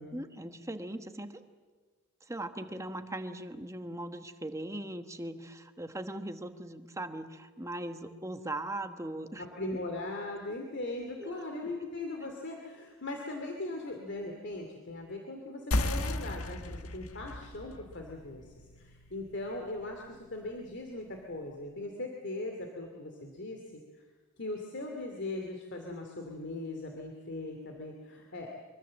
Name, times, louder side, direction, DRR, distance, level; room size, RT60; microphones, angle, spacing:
voice 1, 0.1-1.4 2.2-9.4 11.2-11.4, right 1 dB, 15° right, 8 dB, 1.2 m, -39 dB
voice 2, 9.4-23.8 24.4-28.5, left 2 dB, 55° left, 2 dB, 2.6 m, -39 dB
sound 1, 15.7-20.8, left 1 dB, 80° left, 1.5 m, -36 dB
24.5 x 24.0 x 7.6 m, 1.4 s
head